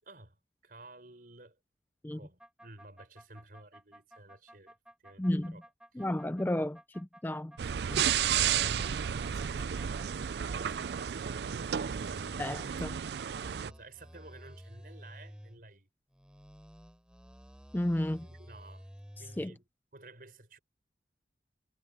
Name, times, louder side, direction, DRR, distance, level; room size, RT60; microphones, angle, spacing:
voice 1, 0.0-0.4 0.6-1.6 2.1-4.7 5.0-5.6 5.9-6.1 8.2-10.2 10.5-11.3 11.6-12.3 13.4-15.9 18.2-18.9 19.2-19.6 19.9-20.6, right 2 dB, 50° right, 5.5 m, -53 dB
sound 1, 2.4-10.1 10.4-12.6 13.1-15.6 16.1-19.5, equal, 5° right, 4.8 m, -53 dB
voice 2, 5.2-5.6 6.0-7.5 7.9-8.0 12.4-13.0 17.7-18.3 19.4-19.5, left 1 dB, 10° left, 0.4 m, -32 dB
sound 2, 7.6-13.7, right 8 dB, 70° right, 0.4 m, -32 dB
head